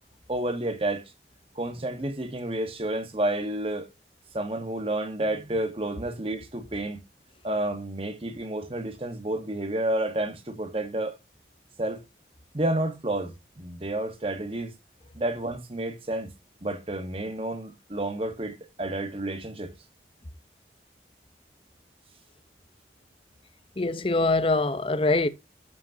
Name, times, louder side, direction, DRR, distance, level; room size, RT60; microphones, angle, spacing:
voice 1, 0.3-1.0 1.5-3.9 4.3-7.0 7.4-11.2 11.8-12.0 12.5-14.7 15.2-16.3 16.6-19.7, right 1 dB, 30° right, 1.2 m, -30 dB
voice 2, 23.8-25.3, left 2 dB, 30° left, 0.7 m, -23 dB
13.0 x 5.3 x 2.7 m
head